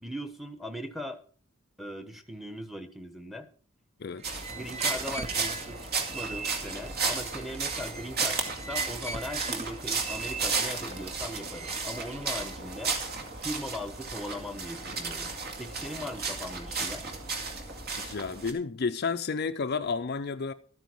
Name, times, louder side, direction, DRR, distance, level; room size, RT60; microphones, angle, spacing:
voice 1, 0.0-1.2 1.8-3.5 4.5-13.0 13.4-15.3 15.6-17.1, left 1 dB, ahead, 1.1 m, -39 dB
voice 2, 4.0-4.4 18.0-20.5, left 5 dB, 50° left, 0.5 m, -31 dB
sound 1, 4.2-12.6, right 3 dB, 30° right, 1.0 m, -41 dB
sound 2, 4.2-18.5, right 4 dB, 50° right, 2.2 m, -34 dB
13.0 x 9.2 x 4.5 m
head